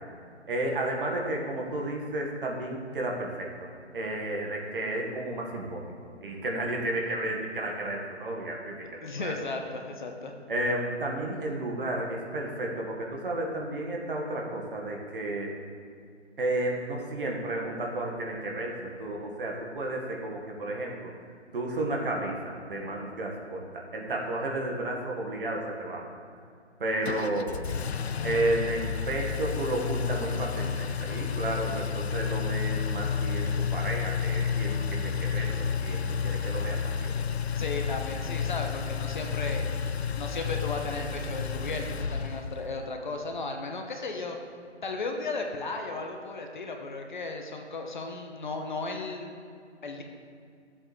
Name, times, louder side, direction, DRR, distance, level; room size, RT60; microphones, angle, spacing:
voice 1, 0.5-5.9 6.2-8.8 9.0-9.3 10.5-15.5 16.4-21.1 21.5-26.0 26.8-27.6 28.2-37.1, right 1 dB, 50° right, -1 dB, 1.6 m, -32 dB
voice 2, 9.0-10.4 37.5-39.6 40.2-44.4 44.8-49.4 49.8-50.0, left 3 dB, 40° left, 3 dB, 1.0 m, -35 dB
Engine, 27.0-42.8, left 6 dB, 65° left, 0.5 m, -31 dB
13.5 x 7.7 x 3.2 m, 2.4 s
figure-of-eight pair, 140°, 35 cm